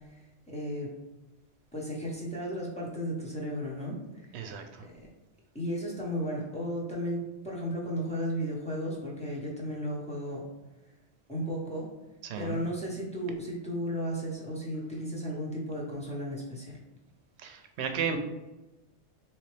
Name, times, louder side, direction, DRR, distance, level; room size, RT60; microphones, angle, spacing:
voice 1, 0.5-0.9 1.7-4.3 5.5-10.4 11.3-11.9 12.4-16.8, equal, 5° left, -5 dB, 0.8 m, -34 dB
voice 2, 4.3-4.9 12.2-12.6 17.4-18.2, right 6 dB, 75° right, 6 dB, 0.8 m, -34 dB
3.9 x 3.1 x 3.2 m, 1.0 s
omnidirectional pair, 1.2 m